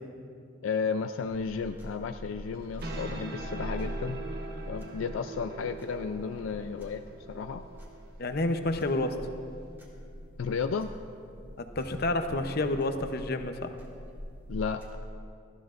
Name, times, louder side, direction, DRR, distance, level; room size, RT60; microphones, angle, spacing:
voice 1, 0.6-4.2 4.7-7.6 10.4-10.9 14.5-15.0, left 5 dB, 80° left, 8 dB, 0.4 m, -33 dB
sound 1, 1.3-14.9, equal, 10° right, 2.0 m, -43 dB
sound 2, 2.5-9.7, right 3 dB, 55° right, 1.0 m, -43 dB
voice 2, 8.2-9.1 11.8-13.7, left 2 dB, 55° left, 7 dB, 0.7 m, -29 dB
19.5 x 13.5 x 2.5 m, 2.4 s
head